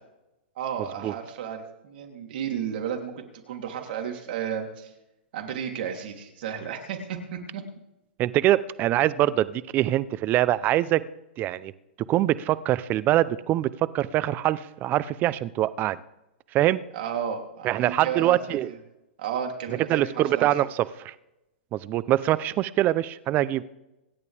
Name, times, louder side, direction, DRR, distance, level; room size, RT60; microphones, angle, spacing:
voice 1, 0.6-4.9 5.3-7.6 16.9-18.8 19.2-20.5, right 8 dB, 60° right, 2 dB, 3.2 m, -33 dB
voice 2, 8.2-11.0 11.4-11.7 12.1-13.7 13.9-16.0 16.5-16.8 17.6-18.7 19.9-21.1 21.7-23.6, right 14 dB, 30° right, 17 dB, 0.6 m, -24 dB
26.0 x 11.0 x 3.5 m, 0.93 s
hypercardioid pair, 130°, 6 cm